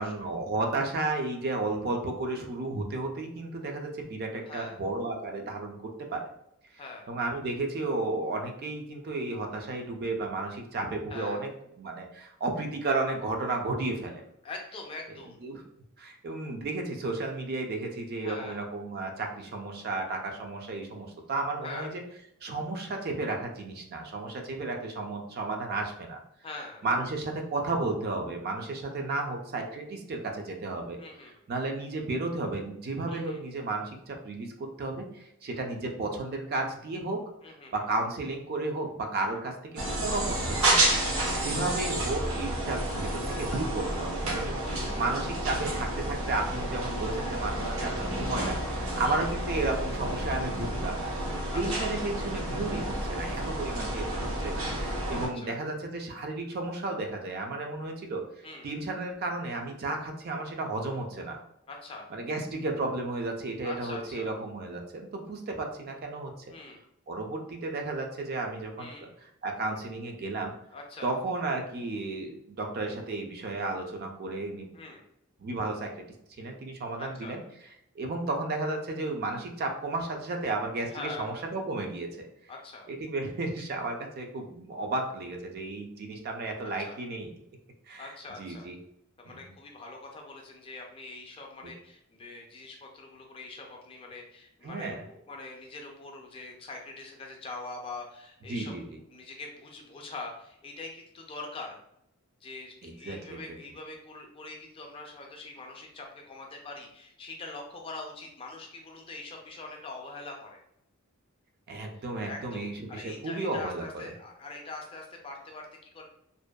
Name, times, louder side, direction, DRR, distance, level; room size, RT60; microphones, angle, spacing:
voice 1, 0.0-6.3 7.1-11.5 11.8-14.2 15.4-15.6 16.0-22.0 22.4-26.2 26.8-31.0 31.5-34.5 34.8-37.2 37.7-39.5 40.0-40.9 41.4-51.0 51.5-58.2 58.6-61.4 62.1-66.3 67.1-68.9 69.4-70.5 71.0-74.7 75.4-75.9 76.4-77.4 78.0-82.3 82.9-87.3 87.9-88.8 89.3-89.4 94.6-95.0 98.5-99.0 102.8-103.4 111.7-113.9, right 2 dB, 45° right, 3 dB, 0.3 m, -33 dB
voice 2, 4.4-4.8 6.8-7.1 11.1-11.4 14.4-15.4 18.2-18.6 21.6-21.9 26.4-26.8 31.0-31.4 33.1-33.4 37.4-37.9 40.9-41.7 44.5-45.0 49.0-49.3 51.5-51.9 55.4-55.5 58.4-58.7 61.7-62.1 63.6-64.3 66.5-66.8 68.8-69.1 70.7-71.1 74.7-75.0 77.0-77.4 80.9-81.3 82.5-82.9 86.6-87.0 88.0-88.7 89.2-98.7 99.1-101.8 102.4-110.6 111.9-116.0, left 3 dB, 25° left, 1 dB, 0.4 m, -43 dB
sound 1, 39.8-55.3, right 1 dB, 75° right, 0.7 m, -30 dB
2.5 x 2.2 x 2.2 m, 0.76 s
head